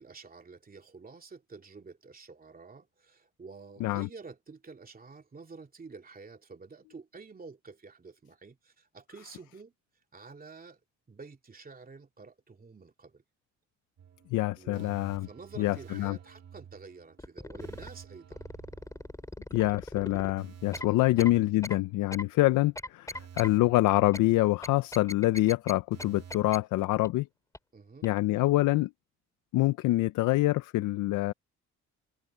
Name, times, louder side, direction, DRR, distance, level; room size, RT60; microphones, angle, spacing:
voice 1, 0.0-9.7 10.1-10.8 11.1-13.2 14.5-18.4 20.8-21.1 27.7-28.1, right 4 dB, 30° right, 2.9 m, -49 dB
sound 1, 14.0-19.5 19.8-19.9 20.4-22.3 22.6-22.7 23.1-25.1 25.4-25.5 25.9-26.5, right 8 dB, 55° right, 2.0 m, -51 dB
voice 2, 14.3-15.3 15.6-16.2 19.5-27.3 28.0-28.9 29.5-31.3, left 18 dB, 90° left, 0.6 m, -26 dB
sound 2, 17.2-17.9 18.3-20.3 20.7-20.9 21.2-21.3 21.6-21.8 22.1-22.2 22.7-23.5 24.1-24.2 24.6-25.7 26.0-26.1 26.3-26.6 27.0-27.1 27.5-27.6 28.0-28.1, left 1 dB, 10° left, 3.9 m, -39 dB
cardioid pair, 90°, 30 cm